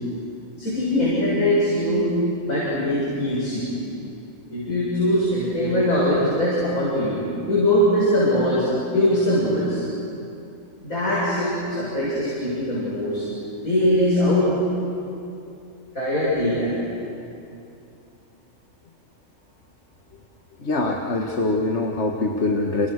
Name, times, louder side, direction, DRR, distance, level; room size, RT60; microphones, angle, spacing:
voice 1, 0.6-2.1 2.4-3.7 4.5-8.7 8.9-9.8 10.8-13.2 13.6-14.5 15.9-16.7, left 1 dB, 85° left, -8 dB, 8.1 m, -21 dB
voice 2, 20.6-22.9, left 2 dB, 55° left, 2 dB, 2.0 m, -23 dB
30.0 x 29.5 x 6.7 m, 2.7 s
omnidirectional pair, 1.4 m